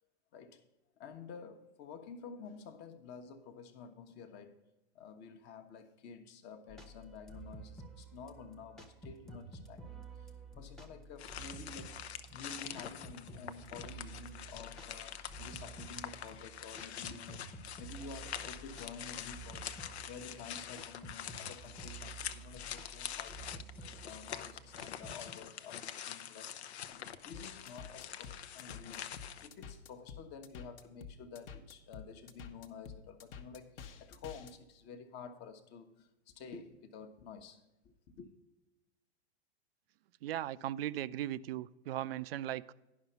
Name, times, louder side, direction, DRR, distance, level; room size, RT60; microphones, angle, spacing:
voice 1, 0.3-0.6 1.0-4.6 4.9-12.0 12.3-29.1 29.4-38.3, left 5 dB, 30° left, 0.9 m, -51 dB
sound 1, 6.7-25.3, right 3 dB, ahead, 0.8 m, -51 dB
sound 2, 11.2-29.5, left 9 dB, 70° left, 0.7 m, -45 dB
sound 3, 27.3-34.5, left 6 dB, 55° left, 1.0 m, -49 dB
voice 2, 40.2-42.7, right 12 dB, 60° right, 0.5 m, -38 dB
10.5 x 5.7 x 5.4 m
hypercardioid pair, 120°, 34 cm